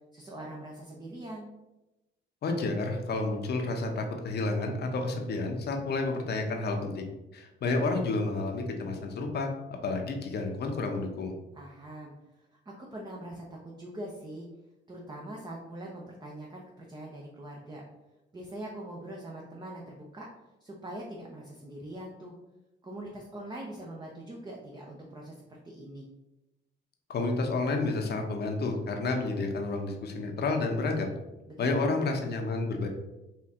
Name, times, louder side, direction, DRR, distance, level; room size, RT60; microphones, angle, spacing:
voice 1, 0.1-1.5 11.5-14.5 14.9-17.8 18.3-20.3 20.6-22.3 22.8-26.1 31.5-32.1, right 1 dB, 20° right, -2 dB, 0.8 m, -43 dB
voice 2, 2.4-7.1 7.3-9.5 9.8-11.4 27.1-31.1 31.6-32.9, left 3 dB, 55° left, 3 dB, 0.8 m, -30 dB
4.3 x 2.7 x 3.6 m, 0.99 s
cardioid pair, 90°, 20 cm